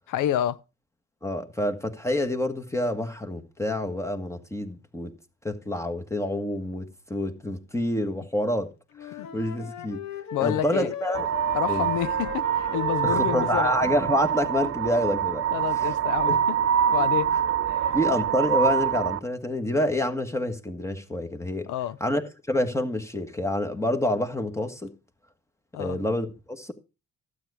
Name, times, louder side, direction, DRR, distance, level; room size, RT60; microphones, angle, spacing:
voice 1, 0.1-0.6 9.2-9.3 10.3-10.9 11.5-13.7 15.5-16.6 16.9-17.3 17.7-17.9 21.7-22.0 25.7-26.0, left 11 dB, 85° left, 0.6 m, -29 dB
voice 2, 1.2-5.1 5.4-8.7 9.0-10.0 10.4-11.3 11.7-11.9 13.0-15.4 15.7-15.9 16.3-16.4 17.9-21.7 22.0-24.9 25.8-26.7, left 1 dB, 10° left, 1.5 m, -27 dB
Wind instrument woodwind instrument, 8.9-14.6, left 7 dB, 65° left, 1.1 m, -37 dB
sound 1, 11.1-19.2, right 9 dB, 50° right, 0.6 m, -25 dB
12.5 x 8.2 x 4.8 m
cardioid pair, 90°, 30 cm